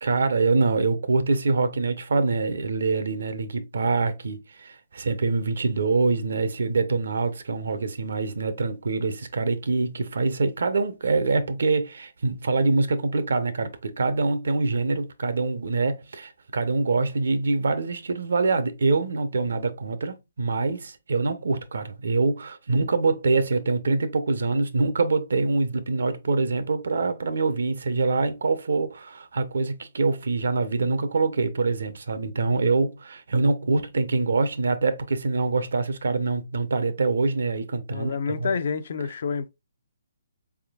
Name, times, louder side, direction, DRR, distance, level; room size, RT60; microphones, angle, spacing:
voice 1, 0.0-38.5, right 3 dB, 75° right, 0.7 m, -25 dB
voice 2, 37.9-39.5, left 5 dB, 55° left, 0.5 m, -28 dB
3.9 x 3.6 x 2.3 m
hypercardioid pair, 155°, 0 cm